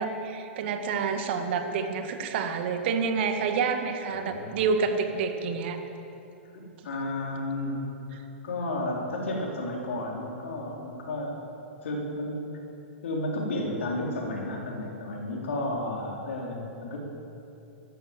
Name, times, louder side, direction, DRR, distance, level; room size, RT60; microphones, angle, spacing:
voice 1, 0.0-5.8, right 5 dB, 60° right, 6 dB, 1.9 m, -28 dB
voice 2, 4.1-4.5 6.5-7.8 8.1-11.4 11.8-12.5 13.0-17.0, left 1 dB, 75° left, -1 dB, 4.0 m, -32 dB
14.5 x 12.0 x 7.6 m, 2.9 s
hypercardioid pair, 110°, 7 cm